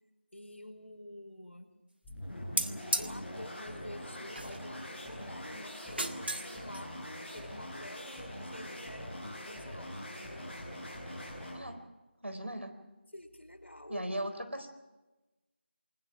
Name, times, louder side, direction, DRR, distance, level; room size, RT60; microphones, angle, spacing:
voice 1, 0.3-1.7 3.0-10.1 13.1-14.1, left 1 dB, 80° left, 5 dB, 4.7 m, -49 dB
sound 1, 2.0-11.7, left 1 dB, 5° left, 4.5 m, -43 dB
sound 2, 2.6-3.1 4.4-4.8 5.8-6.5 6.7-6.8, right 2 dB, 55° right, 1.7 m, -34 dB
voice 2, 12.2-12.7 13.9-14.7, right 1 dB, 80° right, 9 dB, 4.1 m, -37 dB
28.0 x 20.5 x 6.0 m, 1.1 s
figure-of-eight pair, 170°, 6 cm